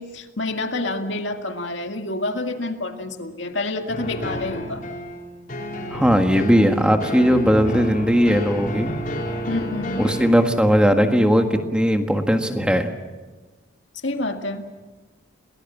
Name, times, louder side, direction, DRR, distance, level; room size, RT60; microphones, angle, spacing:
voice 1, 0.0-4.9 9.5-10.1 14.0-14.6, left 2 dB, 70° left, 5 dB, 2.0 m, -28 dB
sound 1, 3.9-10.3, equal, 45° left, 4.9 m, -30 dB
voice 2, 5.9-8.9 10.0-12.9, equal, 5° right, 5 dB, 1.6 m, -18 dB
28.0 x 19.5 x 7.2 m, 1.3 s
head